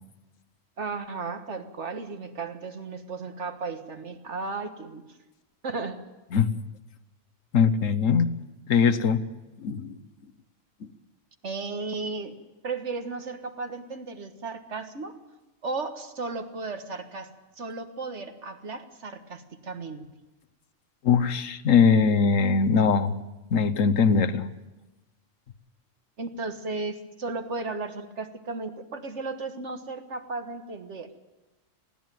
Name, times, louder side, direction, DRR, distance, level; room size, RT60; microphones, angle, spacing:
voice 1, 0.8-5.0 5.6-6.0 11.4-12.4 12.6-15.2 15.6-20.1 26.2-31.1, right 3 dB, 60° right, 7 dB, 1.8 m, -35 dB
voice 2, 7.5-8.4 8.7-9.2 9.6-9.9 10.8-10.9 21.0-23.1 23.5-24.5, left 6 dB, 75° left, 13 dB, 1.3 m, -21 dB
20.5 x 15.5 x 9.2 m, 1.1 s
omnidirectional pair, 1.4 m